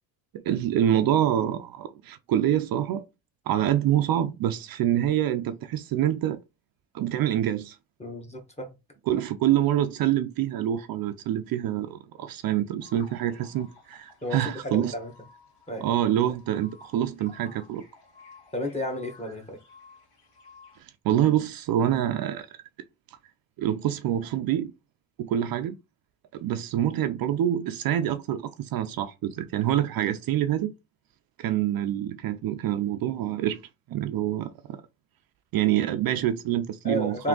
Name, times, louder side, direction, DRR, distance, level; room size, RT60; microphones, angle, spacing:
voice 1, 0.4-3.1 3.5-6.4 6.9-7.8 9.1-14.9 15.8-17.8 20.8-22.5 23.6-24.7 25.2-25.8 26.3-30.7 31.4-33.6 33.9-34.8 35.5-37.3, right 11 dB, 55° right, 0.5 m, -26 dB
voice 2, 8.0-8.7 14.2-15.1 15.7-15.8 18.5-19.6 36.8-37.3, equal, 15° left, 1.2 m, -32 dB
sound 1, 12.8-20.8, left 4 dB, 60° left, 2.0 m, -54 dB
3.5 x 2.8 x 3.8 m
cardioid pair, 135°, 42 cm